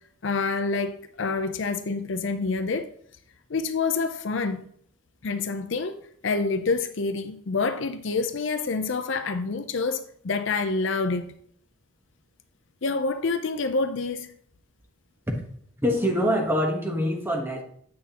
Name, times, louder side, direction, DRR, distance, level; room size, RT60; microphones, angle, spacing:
voice 1, 0.2-2.9 3.5-4.7 5.2-6.0 6.2-11.3 12.8-14.3, left 4 dB, 60° left, 0.6 m, -27 dB
voice 2, 15.8-17.6, equal, 10° right, 1.1 m, -24 dB
8.4 x 6.3 x 2.9 m
head